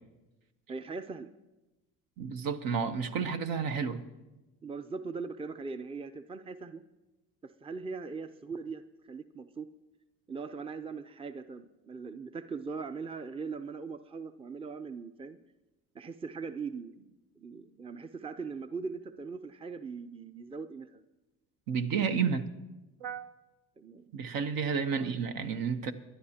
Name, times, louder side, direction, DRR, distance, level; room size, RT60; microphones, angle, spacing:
voice 1, 0.7-1.3 4.6-6.8 7.4-9.7 10.3-15.4 15.9-21.0 23.8-24.1 24.9-25.1, right 4 dB, 15° right, 0.6 m, -40 dB
voice 2, 2.2-4.0 21.7-22.5 23.0-23.3 24.1-25.9, right 6 dB, 65° right, 1.1 m, -31 dB
23.5 x 11.0 x 2.9 m
hypercardioid pair, 65°, 37 cm